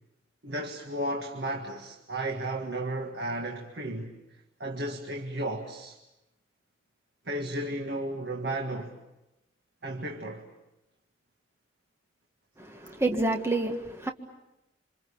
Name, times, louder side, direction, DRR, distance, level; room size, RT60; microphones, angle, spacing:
voice 1, 0.4-4.1 4.6-6.0 7.3-8.9 9.8-10.5 12.8-12.9, right 1 dB, 60° right, 1.9 m, -34 dB
voice 2, 12.6-14.1, right 2 dB, 15° right, 1.7 m, -28 dB
27.5 x 27.0 x 7.0 m
head